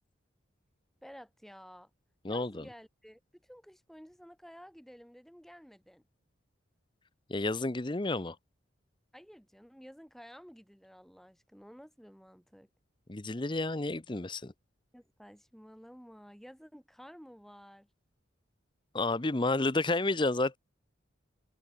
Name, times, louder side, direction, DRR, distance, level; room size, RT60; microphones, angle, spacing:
voice 1, 1.0-1.9 2.3-6.0 9.1-12.7 14.9-17.9, equal, ahead, 4.1 m, -53 dB
voice 2, 2.2-2.6 7.3-8.4 13.1-14.5 18.9-20.6, left 2 dB, 25° left, 0.7 m, -30 dB
head